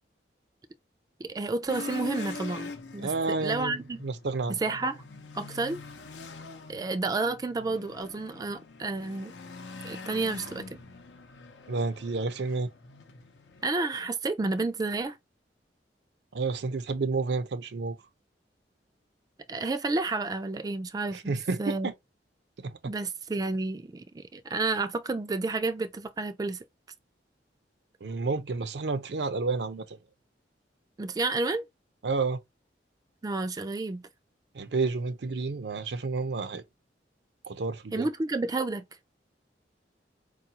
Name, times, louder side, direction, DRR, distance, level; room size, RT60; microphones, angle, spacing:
voice 1, 1.2-3.1 3.4-4.0 4.5-5.0 5.3-5.8 6.7-9.3 9.8-10.8 13.6-15.2 19.5-21.2 21.6-21.9 22.8-26.6 31.0-31.6 33.2-34.0 37.9-38.8, right 3 dB, 20° right, 0.3 m, -30 dB
sound 1, 1.7-13.6, left 3 dB, 90° left, 0.7 m, -43 dB
voice 2, 3.0-4.6 11.7-12.7 16.3-18.0 21.1-21.9 22.6-22.9 28.0-30.0 32.0-32.4 34.5-36.6 37.5-38.1, right 4 dB, 70° right, 0.5 m, -30 dB
4.6 x 2.3 x 2.8 m
head